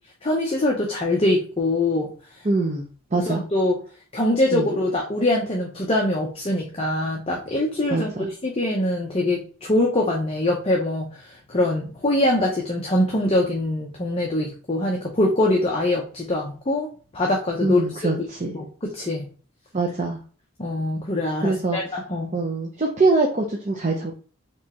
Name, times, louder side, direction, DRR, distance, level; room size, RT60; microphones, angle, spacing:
voice 1, 0.2-2.1 3.1-3.8 4.1-16.9 17.1-18.1 18.5-19.3 20.6-22.4, left 1 dB, 25° left, -1 dB, 0.6 m, -23 dB
voice 2, 2.4-3.4 4.5-4.7 7.9-8.3 17.6-18.5 19.7-20.2 21.4-21.8 22.3-24.1, right 3 dB, 35° right, 0 dB, 0.6 m, -23 dB
4.5 x 3.2 x 2.8 m, 0.39 s
head